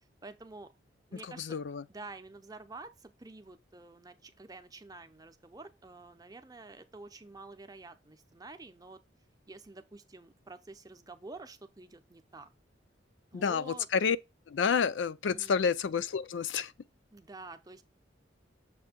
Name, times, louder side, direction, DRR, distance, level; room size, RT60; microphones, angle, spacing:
voice 1, 0.2-0.7 1.1-1.6 1.9-9.0 9.5-12.5 13.3-13.9 15.3-15.7 17.1-17.8, right 3 dB, 20° right, 0.6 m, -49 dB
voice 2, 1.1-1.8 13.3-14.2 14.5-16.7, left 6 dB, 80° left, 0.4 m, -30 dB
6.9 x 2.7 x 5.1 m
head